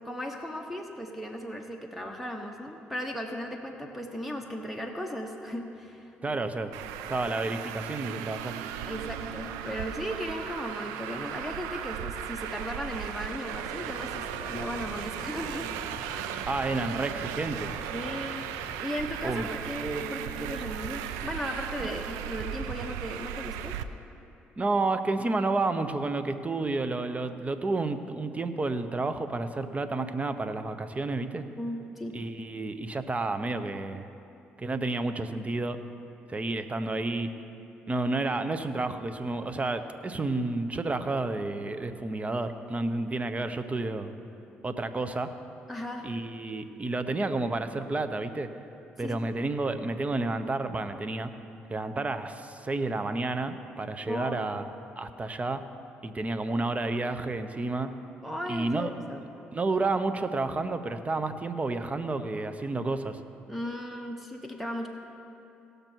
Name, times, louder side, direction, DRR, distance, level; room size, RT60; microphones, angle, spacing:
voice 1, 0.0-6.4 8.8-15.7 16.1-16.5 17.9-18.5 18.8-23.7 31.5-32.2 45.7-46.1 49.0-49.3 54.0-54.4 58.2-59.3 63.5-64.9, equal, ahead, 2 dB, 1.2 m, -36 dB
voice 2, 6.2-6.7 7.1-8.7 16.5-17.7 19.2-19.5 21.8-21.9 24.6-31.5 32.1-34.1 34.6-35.8 36.3-37.3 37.9-44.1 44.6-45.3 46.0-48.5 49.0-51.3 51.7-54.7 55.0-55.6 56.0-57.9 58.5-58.9 59.1-59.3 59.5-63.2, right 2 dB, 30° right, 10 dB, 0.9 m, -30 dB
Traffic noise roadway noise, 6.7-23.8, right 10 dB, 85° right, 0.4 m, -36 dB
sound 1, 13.8-18.8, left 5 dB, 50° left, 0.7 m, -47 dB
18.0 x 6.7 x 4.6 m, 2.7 s
supercardioid pair, 55°, 5 cm